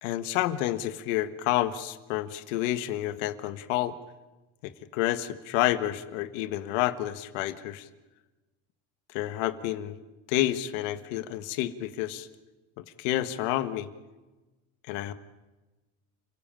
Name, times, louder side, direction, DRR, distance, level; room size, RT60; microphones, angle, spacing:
voice 1, 0.0-4.0 4.6-7.9 9.1-10.0 10.3-12.3 12.8-13.9 14.9-15.1, left 14 dB, 90° left, 11 dB, 1.6 m, -29 dB
30.0 x 17.0 x 9.0 m, 1.2 s
supercardioid pair, 110°, 37 cm